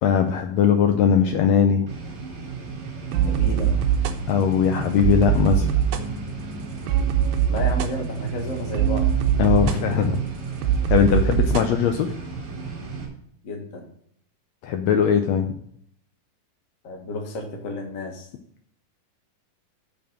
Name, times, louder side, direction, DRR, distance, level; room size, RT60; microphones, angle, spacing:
voice 1, 0.0-1.9 4.3-5.7 9.4-10.2 10.9-12.1 14.6-15.6, left 8 dB, 85° left, 6 dB, 1.5 m, -20 dB
sound 1, 1.9-13.1, right 5 dB, 45° right, 2.7 m, -35 dB
sound 2, 3.1-11.7, right 9 dB, 80° right, 2.1 m, -23 dB
voice 2, 3.2-3.8 7.5-9.1 13.4-13.9 16.8-18.3, left 2 dB, 40° left, 2 dB, 1.2 m, -32 dB
6.6 x 5.6 x 7.3 m, 0.65 s
omnidirectional pair, 3.8 m